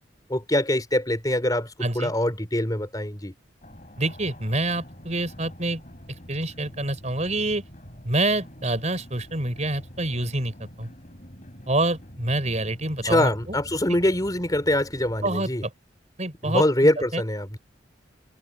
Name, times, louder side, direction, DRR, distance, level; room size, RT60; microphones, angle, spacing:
voice 1, 0.3-3.3 13.0-15.6 16.4-17.6, left 1 dB, 20° left, 3.9 m, -24 dB
voice 2, 1.8-2.1 4.0-5.8 6.3-7.6 8.0-10.9 11.7-13.3 15.2-15.7 16.2-16.6 17.1-17.2, right 2 dB, 35° right, 4.8 m, -26 dB
sound 1, 3.6-15.3, equal, 40° left, 6.8 m, -45 dB
head